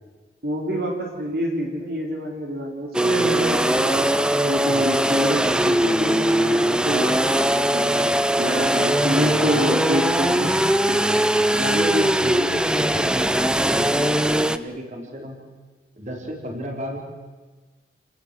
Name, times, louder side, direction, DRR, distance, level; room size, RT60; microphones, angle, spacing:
voice 1, 0.4-4.1 4.4-7.9 8.4-10.6 10.9-11.0, equal, 60° right, 0 dB, 4.0 m, -26 dB
sound 1, 2.9-14.6, right 1 dB, 5° right, 0.7 m, -20 dB
voice 2, 4.6-5.0 8.9-9.6 10.3-10.5 11.4-13.4 13.7-15.4 16.0-17.0, equal, 45° right, 2 dB, 4.5 m, -31 dB
29.0 x 18.5 x 7.9 m, 1.3 s
head